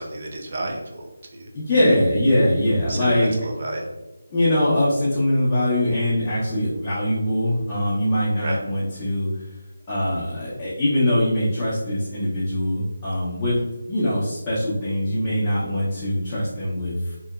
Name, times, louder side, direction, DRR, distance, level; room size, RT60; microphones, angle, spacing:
voice 1, 0.0-1.5 2.9-3.9 8.4-8.6, right 1 dB, 45° right, 1 dB, 0.5 m, -31 dB
voice 2, 1.5-3.4 4.3-9.3 9.9-13.5 13.9-17.3, left 1 dB, 20° left, -10 dB, 0.6 m, -22 dB
2.8 x 2.1 x 2.3 m, 1.1 s
figure-of-eight pair, 160°, 0 cm